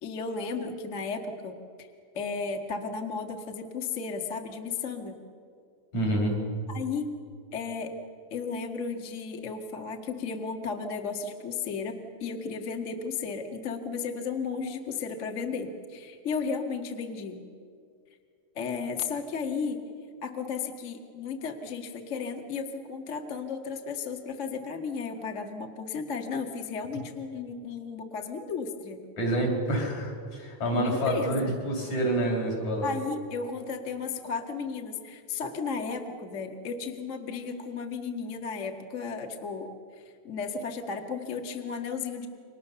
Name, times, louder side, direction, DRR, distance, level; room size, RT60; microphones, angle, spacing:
voice 1, 0.0-1.9 2.1-5.2 6.7-7.1 7.5-7.9 8.3-17.4 18.5-19.8 20.2-29.0 30.7-31.5 32.8-39.7 40.0-42.3, left 5 dB, 35° left, 4 dB, 1.3 m, -34 dB
voice 2, 5.9-6.4 29.2-32.9, right 1 dB, 55° left, 0 dB, 6.7 m, -27 dB
28.5 x 25.0 x 6.9 m, 2.3 s
omnidirectional pair, 3.8 m